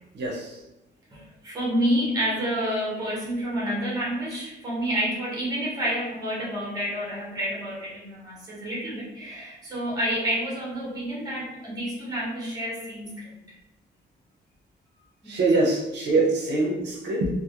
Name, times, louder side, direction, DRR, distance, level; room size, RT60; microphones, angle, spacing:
voice 1, 0.1-0.6 15.2-17.3, right 2 dB, 65° right, -3 dB, 0.5 m, -24 dB
voice 2, 1.1-13.4 15.2-15.4, equal, 20° right, -5 dB, 0.7 m, -29 dB
2.3 x 2.0 x 2.8 m, 0.95 s
cardioid pair, 170°, 19 cm